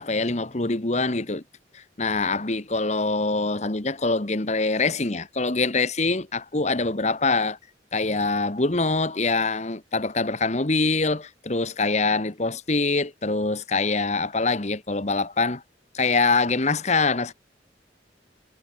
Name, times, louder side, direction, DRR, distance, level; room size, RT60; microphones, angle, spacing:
voice 1, 0.0-1.4 1.7-7.6 7.9-15.6 15.9-17.3, left 3 dB, 40° left, 1.4 m, -24 dB
head